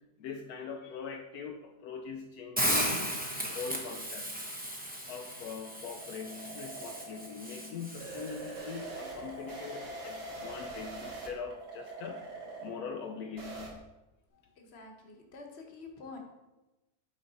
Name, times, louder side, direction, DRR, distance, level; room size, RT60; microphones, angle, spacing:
voice 1, 0.2-3.2 3.5-4.5 5.1-12.3 12.6-13.8 14.3-14.4, left 6 dB, 75° left, 3 dB, 1.0 m, -42 dB
Hiss, 2.6-8.6, equal, 10° right, 0.5 m, -35 dB
sound 1, 4.7-13.7, right 2 dB, 45° right, 1.5 m, -44 dB
voice 2, 14.6-16.2, left 3 dB, 45° left, 2 dB, 1.2 m, -48 dB
8.6 x 4.2 x 4.0 m, 1.0 s
omnidirectional pair, 1.7 m